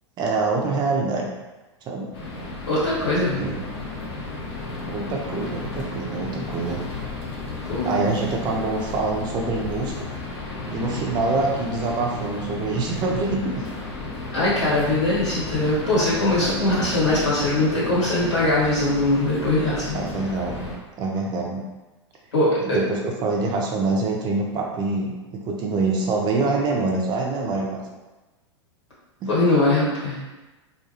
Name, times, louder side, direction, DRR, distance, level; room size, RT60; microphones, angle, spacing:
voice 1, 0.2-1.3 1.9-2.1 3.4-3.6 4.9-6.8 7.8-10.1 10.7-13.7 16.4-16.5 19.9-20.7 21.0-21.7 22.6-25.1 25.4-27.8 29.2-29.3, right 3 dB, 30° right, -1 dB, 0.5 m, -25 dB
sound 1, 2.1-20.8, left 2 dB, 60° left, 0.7 m, -33 dB
voice 2, 2.7-3.5 7.7-8.0 14.3-20.0 22.3-22.8 29.3-30.2, left 2 dB, 80° left, -8 dB, 1.4 m, -21 dB
2.4 x 2.2 x 2.8 m, 1.1 s
figure-of-eight pair, 95°, 15 cm